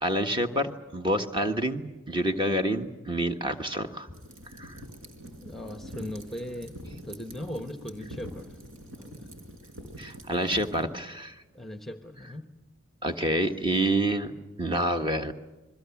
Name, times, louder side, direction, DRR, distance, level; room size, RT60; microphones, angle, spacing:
voice 1, 0.0-4.1 4.6-4.8 10.0-11.3 13.0-14.3 14.6-15.3, right 1 dB, 20° right, 6 dB, 1.4 m, -28 dB
sound 1, 4.1-10.8, equal, 70° right, 5.2 m, -45 dB
voice 2, 5.4-8.6 9.0-9.3 11.5-12.5, left 1 dB, ahead, 7 dB, 1.0 m, -39 dB
28.5 x 21.5 x 7.2 m, 1.1 s
head